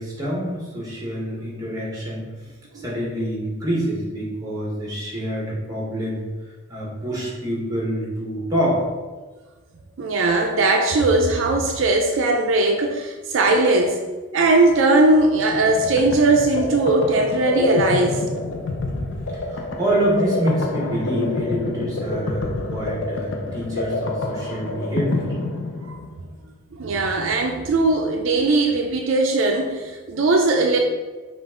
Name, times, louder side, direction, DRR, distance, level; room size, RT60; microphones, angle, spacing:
voice 1, 0.0-2.3 2.7-6.2 6.7-8.8 18.9-19.0 19.5-25.3, equal, 15° right, -4 dB, 1.1 m, -26 dB
voice 2, 10.0-14.0 14.3-18.2 25.9-26.0 26.7-30.8, right 2 dB, 70° right, 2 dB, 0.4 m, -19 dB
sound 1, 15.4-26.2, left 2 dB, 60° left, 0.5 m, -27 dB
5.5 x 2.5 x 3.6 m, 1.3 s
head